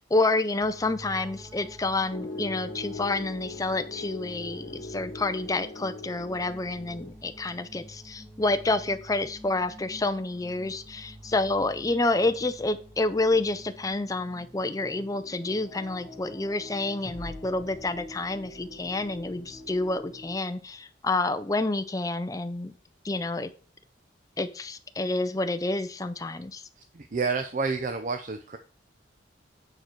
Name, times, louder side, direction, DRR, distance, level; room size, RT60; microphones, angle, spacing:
voice 1, 0.0-22.7 23.0-23.5 24.4-26.6, left 2 dB, 20° left, 10 dB, 0.5 m, -28 dB
sound 1, 0.6-20.4, equal, ahead, 1.0 m, -47 dB
Piano, 2.1-7.1, left 3 dB, 75° left, 1.4 m, -40 dB
sound 2, 17.0-20.3, left 1 dB, 45° left, 1.3 m, -47 dB
voice 2, 26.9-28.6, right 4 dB, 45° right, 7 dB, 0.5 m, -29 dB
8.9 x 4.6 x 4.4 m, 0.39 s
head